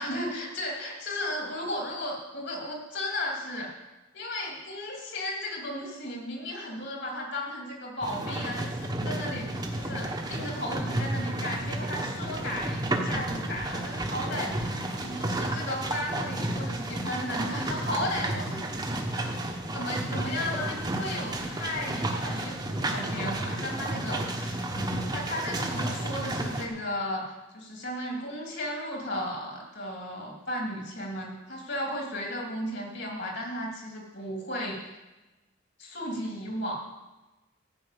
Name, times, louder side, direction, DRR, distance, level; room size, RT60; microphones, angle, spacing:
voice 1, 0.0-3.7 4.1-14.6 15.0-34.8 35.8-36.7, left 1 dB, 55° left, -1 dB, 3.2 m, -35 dB
sound 1, 8.0-26.7, right 1 dB, 20° right, 1.2 m, -32 dB
14.0 x 6.1 x 8.5 m, 1.1 s
head